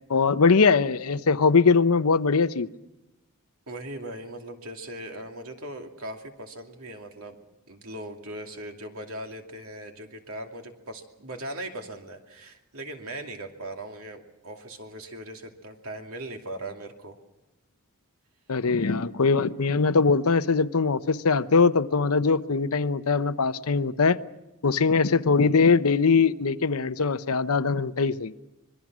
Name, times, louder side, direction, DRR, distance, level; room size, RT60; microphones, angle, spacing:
voice 1, 0.1-2.7 18.5-24.2 24.6-28.3, left 4 dB, 85° left, 13 dB, 0.8 m, -21 dB
voice 2, 3.7-7.4 7.7-17.2, right 1 dB, 75° right, 3 dB, 2.6 m, -39 dB
25.5 x 21.5 x 6.2 m, 0.98 s
head